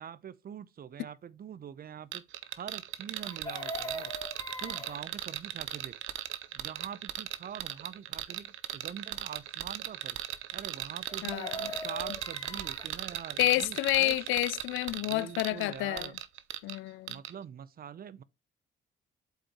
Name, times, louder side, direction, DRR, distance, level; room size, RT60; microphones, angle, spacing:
voice 1, 0.0-4.1 4.6-5.9 6.5-14.3 14.9-16.2 17.1-18.2, right 8 dB, 50° right, 0.7 m, -45 dB
sound 1, 2.1-16.8 17.1-17.3, right 13 dB, 80° right, 0.8 m, -37 dB
Chicken rooster, 3.2-5.0 11.1-12.9 15.1-15.2 15.5-15.8, left 1 dB, 20° left, 2.6 m, -41 dB
voice 2, 11.2-11.7 13.4-16.1 16.6-17.2, left 18 dB, 90° left, 0.4 m, -29 dB
7.7 x 5.2 x 3.0 m
cardioid pair, 90°, 20 cm